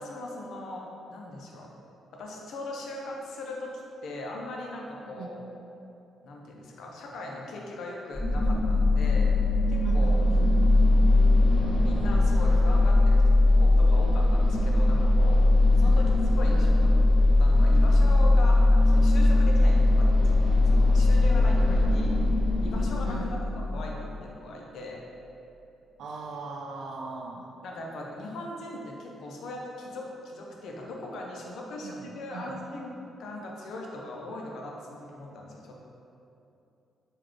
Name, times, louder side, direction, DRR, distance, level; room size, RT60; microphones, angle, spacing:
voice 1, 0.0-1.7 2.1-5.4 6.2-9.3 9.7-10.2 11.8-15.4 15.8-16.1 16.4-17.0 17.4-20.1 20.7-22.1 22.6-23.4 23.7-25.0 27.6-35.8, left 2 dB, 75° left, -1 dB, 0.5 m, -39 dB
nog paal, 8.1-24.0, left 2 dB, 35° left, 1.0 m, -20 dB
voice 2, 9.8-10.8 15.8-16.1 16.4-16.9 23.0-23.4 26.0-27.5 31.8-32.5, right 4 dB, 75° right, 1 dB, 0.4 m, -39 dB
3.8 x 2.3 x 3.2 m, 2.8 s
cardioid pair, 85°, 0 cm